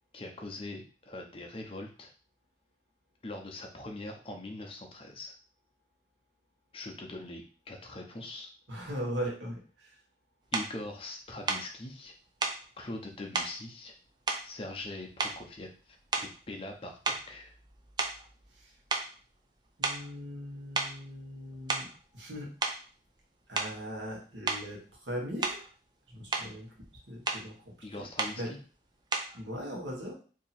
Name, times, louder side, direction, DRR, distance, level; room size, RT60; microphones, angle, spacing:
voice 1, 0.1-2.1 3.2-5.3 6.7-8.5 10.5-12.1 12.8-13.9 14.4-17.5 27.8-28.6, left 2 dB, 30° left, 2 dB, 0.6 m, -42 dB
voice 2, 8.7-10.0 18.5-18.7 19.8-21.9 22.1-22.5 23.5-25.6 26.1-26.7 27.1-28.5 29.3-30.1, equal, 90° right, -1 dB, 1.3 m, -39 dB
sound 1, 10.5-10.7 11.5-11.7 12.4-12.6 13.3-13.6 14.3-14.9 15.2-15.6 16.1-16.5 17.0-18.6 18.9-19.1 19.8-20.1 20.8-21.0 21.5-22.0 22.6-22.8 23.6-23.8 24.5-24.7 25.4-25.7 26.1-26.5 27.3-27.5 28.2-28.4 29.1-29.4, right 3 dB, 25° right, 0.4 m, -33 dB
2.8 x 2.8 x 4.1 m, 0.38 s
head